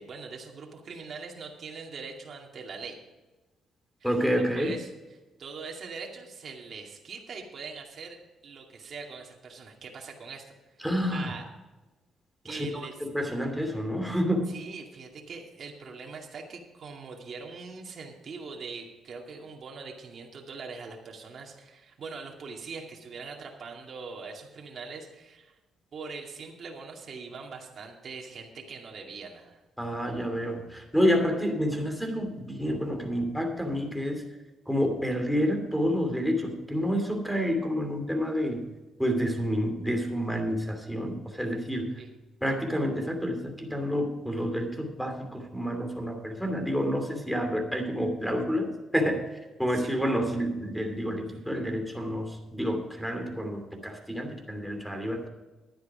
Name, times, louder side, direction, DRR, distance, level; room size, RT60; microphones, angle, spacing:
voice 1, 0.0-3.0 4.0-8.2 8.4-10.5 11.1-11.5 12.4-13.0 14.5-25.6 25.9-29.6 42.0-42.1 49.7-49.9, right 4 dB, 55° right, 0 dB, 2.3 m, -42 dB
voice 2, 4.0-4.7 10.8-11.3 12.4-14.5 29.8-34.2 34.7-38.6 39.0-41.9 42.4-49.2 49.6-55.3, equal, ahead, 5 dB, 2.8 m, -29 dB
12.0 x 9.9 x 5.0 m, 1.1 s
cardioid pair, 90°, 0 cm